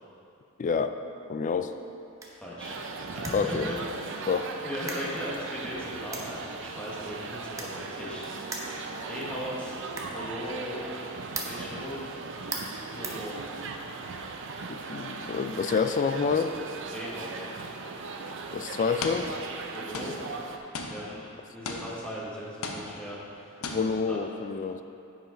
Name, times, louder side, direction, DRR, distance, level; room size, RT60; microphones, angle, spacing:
voice 1, 0.6-0.9 1.3-1.7 3.3-3.7 4.3-4.5 14.7-16.6 18.5-19.3 23.6-24.8, left 5 dB, 35° left, 9 dB, 0.3 m, -28 dB
sound 1, 1.6-13.9, right 2 dB, 15° right, 0.7 m, -43 dB
voice 2, 2.2-3.8 4.3-8.3 8.6-8.7 9.1-9.8 10.1-10.8 11.4-12.1 12.9-13.7 14.0-14.1 16.9-17.5 19.7-20.2 20.9-23.7 24.1-24.2, equal, 5° left, -7 dB, 1.3 m, -38 dB
sound 2, 2.6-20.6, right 4 dB, 60° right, 0.5 m, -38 dB
sound 3, 17.9-18.1 19.0-19.7 19.9-22.3 22.6-23.3 23.6-24.2, left 3 dB, 80° left, 0.7 m, -38 dB
8.9 x 4.9 x 5.1 m, 2.8 s
head